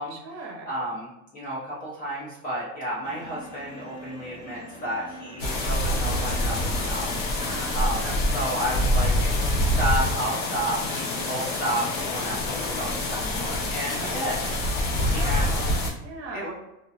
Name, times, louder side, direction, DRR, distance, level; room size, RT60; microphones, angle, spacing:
voice 1, 0.1-0.7 7.4-7.8 8.0-8.5 13.9-14.2 14.9-16.5, right 3 dB, 30° right, -1 dB, 0.6 m, -39 dB
voice 2, 0.7-7.1 7.7-8.1 8.3-14.4 15.1-15.5 16.3-16.5, right 1 dB, 25° left, -6 dB, 0.3 m, -32 dB
sound 1, 3.0-14.6, right 1 dB, 40° left, 0.8 m, -43 dB
sound 2, 5.4-15.9, left 1 dB, 70° left, 0.9 m, -26 dB
2.5 x 2.0 x 2.6 m, 0.92 s
supercardioid pair, 145°, 41 cm